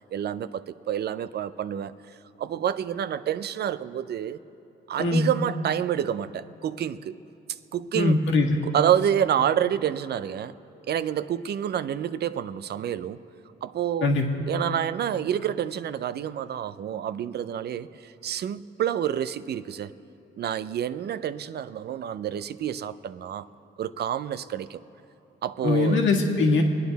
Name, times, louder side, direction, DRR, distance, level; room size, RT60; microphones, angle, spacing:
voice 1, 0.1-1.9 2.4-4.4 4.9-7.2 7.7-8.2 8.6-10.5 10.9-13.2 13.6-14.1 14.5-19.9 20.4-23.5 23.8-24.8 25.4-26.0, right 10 dB, 55° right, 14 dB, 0.5 m, -28 dB
voice 2, 5.0-5.3 7.9-8.6 14.0-14.2 25.6-26.6, left 3 dB, 70° left, 1 dB, 1.7 m, -21 dB
25.0 x 9.4 x 4.1 m, 2.9 s
cardioid pair, 90°, 20 cm